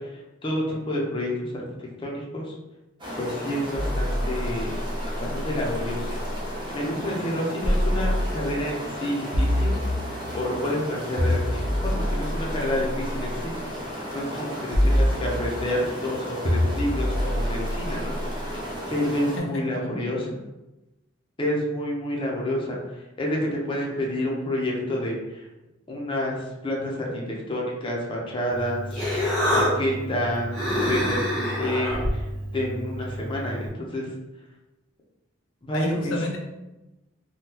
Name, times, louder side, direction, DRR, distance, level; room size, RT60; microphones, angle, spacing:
voice 1, 0.0-2.5 3.2-4.8 5.2-6.1 6.7-9.8 10.3-13.5 14.1-18.2 18.9-20.4 21.4-25.5 25.9-28.9 29.1-32.2 32.5-34.1 35.6-36.2, left 1 dB, 25° left, -2 dB, 0.6 m, -29 dB
sound 1, 3.0-19.4, equal, 25° right, 0.7 m, -35 dB
sound 2, 3.7-6.5 7.6-8.7 9.3-10.4 11.2-13.4 14.7-15.8 16.4-18.6, equal, 85° right, 0.8 m, -26 dB
voice 2, 19.4-20.2 35.7-36.4, left 2 dB, 75° left, 2 dB, 0.4 m, -32 dB
Human voice, 28.5-33.7, equal, 5° left, 1.3 m, -27 dB
3.6 x 2.3 x 2.8 m, 1.0 s
head